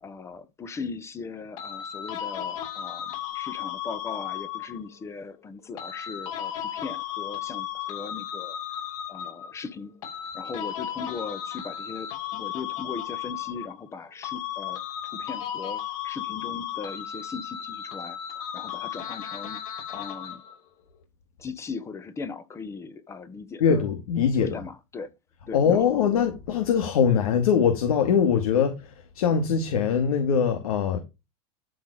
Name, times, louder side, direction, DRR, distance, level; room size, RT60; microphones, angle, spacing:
voice 1, 0.0-8.6 9.1-9.9 10.3-14.8 15.2-19.6 19.9-20.4 21.4-23.8 24.3-25.1 25.5-26.1, left 4 dB, 15° left, 1.1 m, -39 dB
sound 1, 1.6-4.9 5.8-9.6 10.0-14.0 14.2-20.6, left 10 dB, 65° left, 6.1 m, -35 dB
voice 2, 23.6-24.6 25.5-31.0, left 7 dB, 90° left, 2.3 m, -22 dB
13.0 x 5.4 x 5.0 m
supercardioid pair, 155°, 18 cm